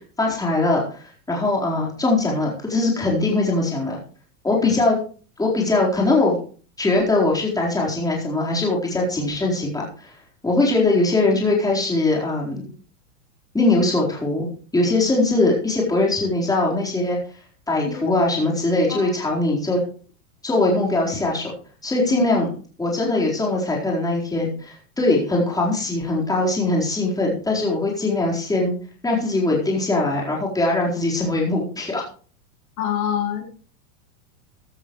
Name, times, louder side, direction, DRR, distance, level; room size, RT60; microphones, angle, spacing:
voice 1, 0.2-4.0 4.4-5.0 5.4-6.4 6.8-10.1 10.4-12.7 13.5-14.5 14.7-17.2 17.7-19.8 20.4-21.5 21.8-22.5 22.8-28.7 29.0-32.0, left 2 dB, 10° left, -3 dB, 4.2 m, -21 dB
voice 2, 32.8-33.4, left 9 dB, 70° left, 1 dB, 4.6 m, -26 dB
14.0 x 13.0 x 3.2 m, 0.41 s
supercardioid pair, 130°, 45 cm